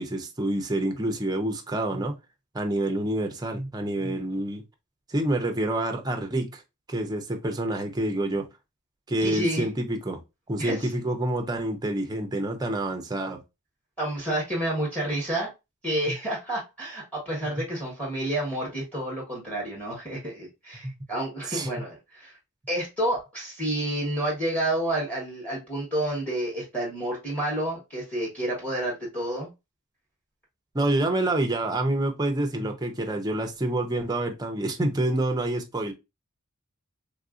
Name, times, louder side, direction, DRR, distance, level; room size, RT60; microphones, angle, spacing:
voice 1, 0.0-2.1 2.5-4.6 5.1-6.6 6.9-8.5 9.1-10.2 10.5-13.4 20.8-20.9 21.5-21.7 30.7-35.9, right 1 dB, 15° right, 0.5 m, -27 dB
voice 2, 9.2-9.6 10.6-10.8 14.0-15.5 15.8-22.4 22.7-29.5, right 1 dB, 5° left, 1.1 m, -29 dB
3.4 x 2.5 x 2.4 m
head